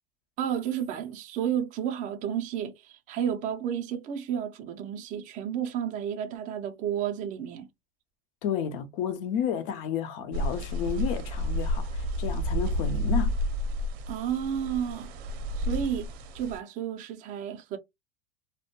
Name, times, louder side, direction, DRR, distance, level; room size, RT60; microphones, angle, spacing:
voice 1, 0.4-7.7 14.1-15.1 15.6-16.1 16.3-17.8, right 9 dB, 25° right, 0.3 m, -31 dB
voice 2, 8.4-13.4, left 8 dB, 50° left, 0.6 m, -31 dB
sound 1, 10.3-16.6, equal, 60° right, 0.6 m, -30 dB
2.1 x 2.1 x 2.8 m
supercardioid pair, 125°, 35 cm